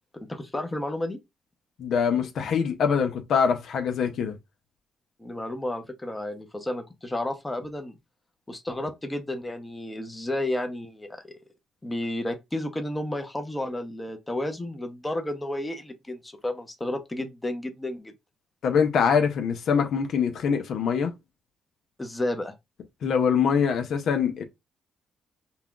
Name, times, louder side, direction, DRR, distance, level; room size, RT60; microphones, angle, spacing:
voice 1, 0.1-1.2 5.2-7.9 8.5-11.3 11.8-18.1 22.0-22.5, left 1 dB, 15° left, 0.7 m, -32 dB
voice 2, 1.8-4.4 18.6-21.1 23.0-24.4, left 6 dB, 65° left, 0.6 m, -24 dB
5.5 x 2.3 x 2.4 m
cardioid pair, 90°, 0 cm